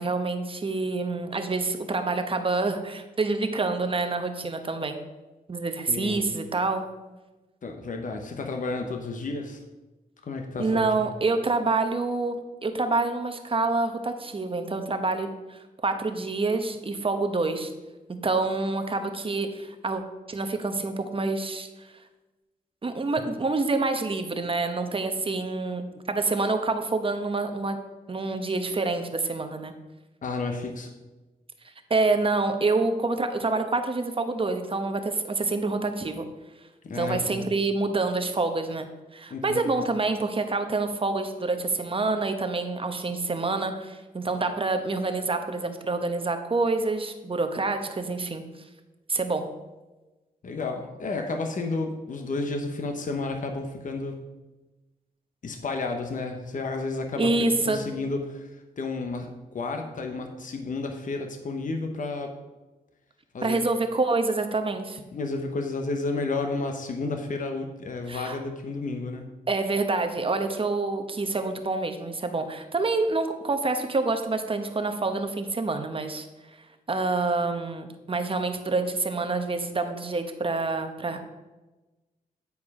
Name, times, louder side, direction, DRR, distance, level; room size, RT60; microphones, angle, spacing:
voice 1, 0.0-5.0 5.5-6.8 10.6-17.7 18.1-20.0 20.3-21.9 22.8-27.8 28.1-29.7 31.9-36.2 36.9-48.4 49.1-49.5 57.2-57.8 63.4-65.0 68.1-68.4 69.5-76.3 76.9-81.3, right 3 dB, 35° right, 7 dB, 0.9 m, -27 dB
voice 2, 5.9-6.2 7.6-9.6 10.2-11.1 30.2-30.9 36.8-37.5 39.3-39.7 50.4-54.2 55.4-62.3 63.3-63.6 65.1-69.3, left 3 dB, 55° left, 4 dB, 1.0 m, -32 dB
9.5 x 4.7 x 4.8 m, 1.1 s
cardioid pair, 80°, 16 cm